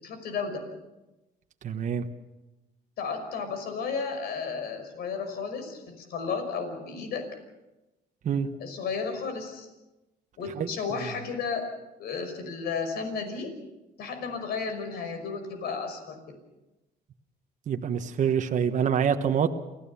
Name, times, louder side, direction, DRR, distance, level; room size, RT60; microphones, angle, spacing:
voice 1, 0.0-0.6 3.0-7.3 8.6-9.7 10.4-11.7 12.0-13.5 14.0-16.4, left 5 dB, 70° left, 7 dB, 5.4 m, -33 dB
voice 2, 1.6-2.0 8.2-8.5 10.6-10.7 17.7-19.5, right 8 dB, 45° right, 5 dB, 1.3 m, -25 dB
28.5 x 16.5 x 7.1 m, 1.0 s
cardioid pair, 110°, 17 cm